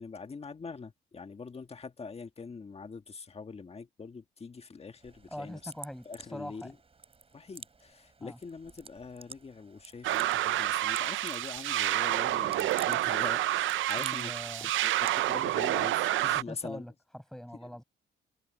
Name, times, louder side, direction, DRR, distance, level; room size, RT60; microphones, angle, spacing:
voice 1, 0.0-5.7 6.0-6.8 7.3-14.3 14.8-16.9 17.6-17.7, left 4 dB, 30° left, 1.6 m, -43 dB
sound 1, 5.0-15.7, right 4 dB, 30° right, 4.7 m, -51 dB
voice 2, 5.3-6.7 8.2-8.4 14.0-14.7 16.3-17.8, equal, ahead, 6.6 m, -43 dB
sound 2, 10.0-16.4, right 14 dB, 75° right, 0.6 m, -29 dB
cardioid pair, 90°, 20 cm